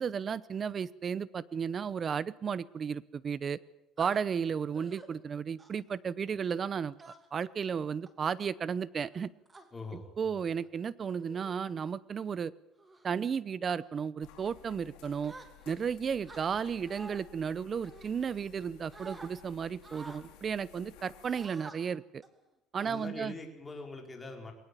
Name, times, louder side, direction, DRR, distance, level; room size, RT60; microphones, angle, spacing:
voice 1, 0.0-3.6 4.0-9.3 10.2-12.5 13.0-15.3 15.7-22.2 22.7-23.3, right 7 dB, 35° right, 20 dB, 0.8 m, -34 dB
sound 1, 4.0-4.2 4.7-5.1 5.6-5.9 7.0-7.4 8.1-8.4 9.1-9.7 10.5-10.7 11.2-11.6 12.0-12.3 12.8-13.1 13.6-13.9 15.2-15.9 16.2-17.2 17.8-18.6 18.9-19.3 19.8-20.2 21.2-21.8 22.2-22.4 22.8-23.5, right 2 dB, 20° right, 2.8 m, -50 dB
voice 2, 9.7-10.4 22.8-24.5, left 3 dB, 20° left, 2 dB, 4.5 m, -43 dB
sound 2, 14.2-21.5, left 12 dB, 90° left, 4.3 m, -56 dB
22.0 x 18.5 x 8.5 m, 0.93 s
cardioid pair, 125°, 0 cm